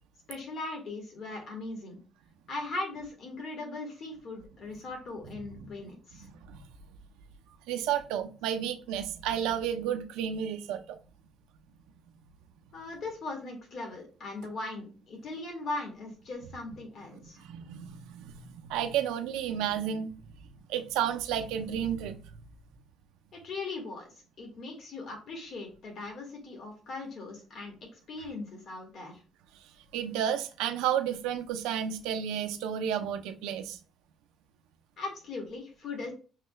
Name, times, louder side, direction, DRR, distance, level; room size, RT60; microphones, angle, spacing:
voice 1, 0.3-2.0 2.5-6.3 12.7-17.4 23.3-27.7 28.1-29.2 35.0-36.1, left 2 dB, 55° left, 1.7 m, -39 dB
voice 2, 6.2-6.6 7.7-11.0 17.4-20.1 20.7-22.2 29.9-33.8, right 9 dB, 90° right, 0.6 m, -32 dB
6.5 x 3.1 x 2.3 m
cardioid pair, 100°, 0 cm